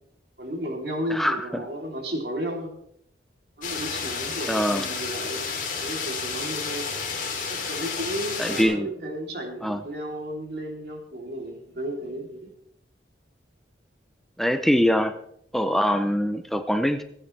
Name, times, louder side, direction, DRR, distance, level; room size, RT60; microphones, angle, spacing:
voice 1, 0.4-2.7 3.6-5.4 5.8-6.9 7.5-12.5, right 1 dB, 60° right, 1 dB, 3.2 m, -33 dB
voice 2, 1.1-1.4 4.5-4.9 8.4-8.9 9.6-9.8 14.4-15.1 15.5-17.0, equal, ahead, 9 dB, 0.6 m, -23 dB
sound 1, 3.6-8.6, left 5 dB, 45° left, 2.9 m, -31 dB
26.0 x 9.0 x 3.3 m, 0.74 s
head